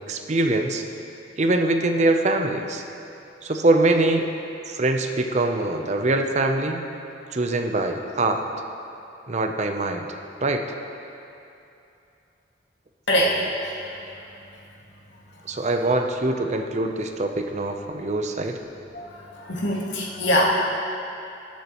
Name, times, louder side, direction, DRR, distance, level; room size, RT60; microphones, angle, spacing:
voice 1, 0.1-0.8 1.4-2.8 3.4-4.3 4.7-6.8 7.3-8.5 9.3-10.1 10.4-10.6 15.5-18.6, right 2 dB, 40° right, 5 dB, 0.6 m, -23 dB
voice 2, 19.5-20.5, equal, 85° left, -4 dB, 2.0 m, -22 dB
19.5 x 7.2 x 3.0 m, 2.8 s
head